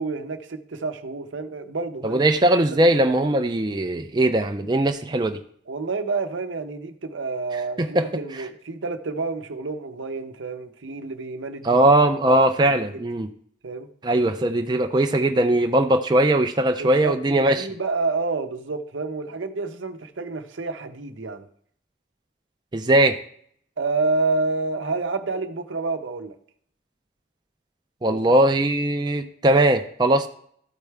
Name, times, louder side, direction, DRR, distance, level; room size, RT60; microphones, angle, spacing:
voice 1, 0.0-2.2 2.7-2.8 5.7-11.8 12.3-12.4 13.6-13.9 16.8-21.5 23.8-26.4 28.0-28.4, right 3 dB, 85° right, 7 dB, 0.7 m, -29 dB
voice 2, 2.0-5.4 7.8-8.5 11.6-13.3 14.0-17.7 22.7-23.2 28.0-30.3, right 1 dB, 20° right, 5 dB, 0.4 m, -20 dB
13.5 x 4.6 x 3.4 m, 0.63 s
head